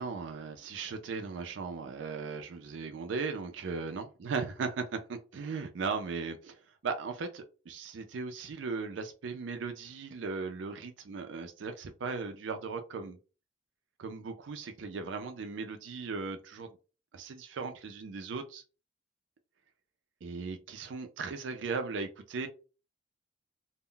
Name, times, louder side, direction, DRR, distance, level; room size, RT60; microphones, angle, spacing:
voice 1, 0.0-13.2 14.0-16.7 17.1-18.6 20.2-22.5, right 4 dB, 85° right, 0.4 m, -37 dB
2.1 x 2.0 x 3.7 m
head